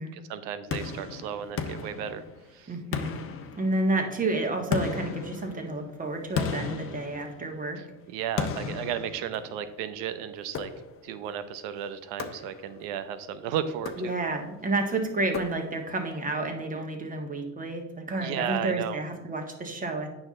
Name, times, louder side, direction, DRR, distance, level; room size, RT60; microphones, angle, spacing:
voice 1, 0.1-2.2 2.5-2.7 7.8-10.7 11.0-14.1 18.2-19.0, right 9 dB, 70° right, 12 dB, 0.9 m, -34 dB
sound 1, 0.7-2.5 2.9-4.1 4.7-7.7 8.4-9.8 10.5-11.2 12.2-12.9 13.7-14.5 15.3-16.0, left 6 dB, 35° left, 1.0 m, -35 dB
voice 2, 2.7-3.2 3.6-7.8 14.0-20.2, right 2 dB, 20° right, 3 dB, 1.7 m, -30 dB
8.8 x 6.1 x 3.8 m, 1.0 s
supercardioid pair, 95°, 39 cm